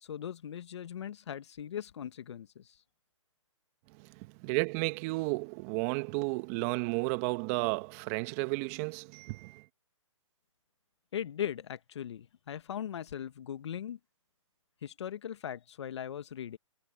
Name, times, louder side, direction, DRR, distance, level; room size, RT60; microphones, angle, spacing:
voice 1, 0.0-2.8 11.1-14.0 14.8-16.6, left 9 dB, 60° left, 1.6 m, -39 dB
voice 2, 4.0-9.6, right 26 dB, 30° right, 1.2 m, -33 dB
hypercardioid pair, 145°, 17 cm